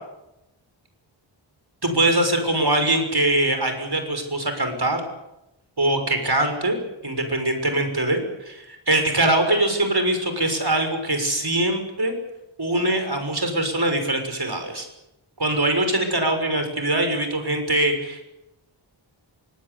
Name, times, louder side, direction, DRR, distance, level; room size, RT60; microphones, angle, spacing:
voice 1, 1.8-5.0 5.8-6.8 7.0-12.1 12.6-14.9 15.4-18.2, right 1 dB, 55° right, 6 dB, 6.4 m, -22 dB
25.5 x 19.0 x 8.5 m, 0.88 s
wide cardioid pair, 55°, 47 cm